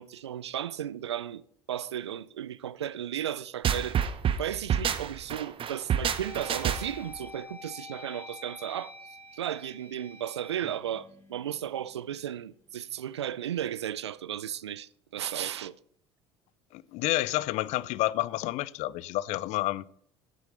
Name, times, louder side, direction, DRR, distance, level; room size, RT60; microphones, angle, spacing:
voice 1, 0.0-1.4 1.7-4.0 4.4-8.9 9.3-15.7, right 10 dB, 90° right, 0.4 m, -35 dB
sound 1, 3.6-7.1, right 8 dB, 40° right, 0.9 m, -28 dB
sound 2, 5.1-5.3 5.8-12.0, left 3 dB, 20° left, 3.3 m, -48 dB
voice 2, 16.7-19.9, left 17 dB, 55° left, 0.5 m, -29 dB
9.0 x 8.5 x 5.2 m
hypercardioid pair, 70°, 14 cm